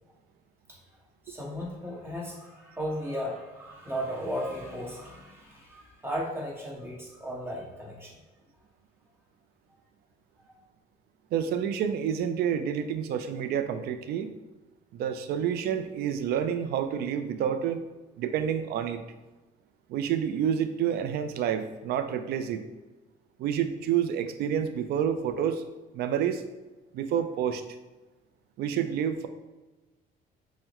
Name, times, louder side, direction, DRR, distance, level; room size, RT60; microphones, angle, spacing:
voice 1, 1.2-8.1, equal, 15° right, -4 dB, 1.2 m, -35 dB
voice 2, 11.3-14.3 14.9-17.8 18.2-19.0 19.9-22.6 23.4-25.6 25.9-26.4 26.9-27.6 28.6-29.3, right 8 dB, 70° right, 9 dB, 0.4 m, -28 dB
5.5 x 2.2 x 3.0 m, 1.2 s
cardioid pair, 110°, 17 cm